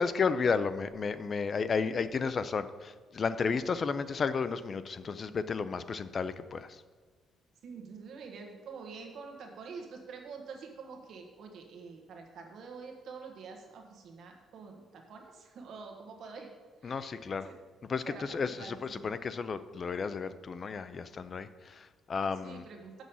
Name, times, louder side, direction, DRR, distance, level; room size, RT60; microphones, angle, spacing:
voice 1, 0.0-6.8 16.8-17.5 17.9-22.7, left 5 dB, 30° left, 13 dB, 0.4 m, -33 dB
voice 2, 7.6-16.5 16.8-17.6 18.0-19.1 22.4-23.0, right 5 dB, 55° right, 2 dB, 1.4 m, -47 dB
7.3 x 6.2 x 7.0 m, 1.5 s
cardioid pair, 155°, 0 cm